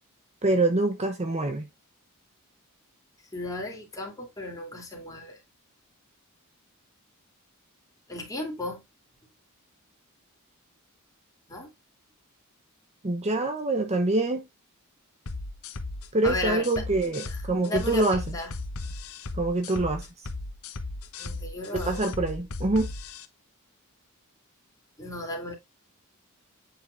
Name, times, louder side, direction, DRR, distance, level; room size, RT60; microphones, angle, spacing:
voice 1, 0.4-1.7 13.0-14.5 16.1-18.4 19.4-20.1 21.7-22.9, right 2 dB, 30° right, 0.8 m, -25 dB
voice 2, 3.3-5.4 8.1-8.8 11.5-11.7 16.2-16.7 17.3-17.4 17.6-18.6 21.2-22.1 25.0-25.5, left 2 dB, 15° left, 3.0 m, -35 dB
sound 1, 15.3-23.2, left 2 dB, 75° left, 1.1 m, -36 dB
8.9 x 5.1 x 2.5 m
head